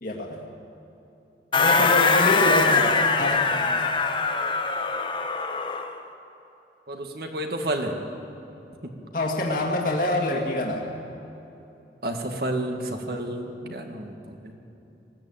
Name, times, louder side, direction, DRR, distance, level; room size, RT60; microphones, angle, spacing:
voice 1, 0.0-0.4 1.6-3.8 9.1-11.0 13.6-13.8, left 1 dB, 50° left, 0 dB, 2.0 m, -26 dB
sound 1, 1.5-5.9, left 4 dB, 30° left, 1.1 m, -22 dB
voice 2, 6.9-8.0 12.0-14.5, right 1 dB, 60° right, 4 dB, 2.1 m, -30 dB
20.0 x 15.5 x 8.9 m, 2.9 s
head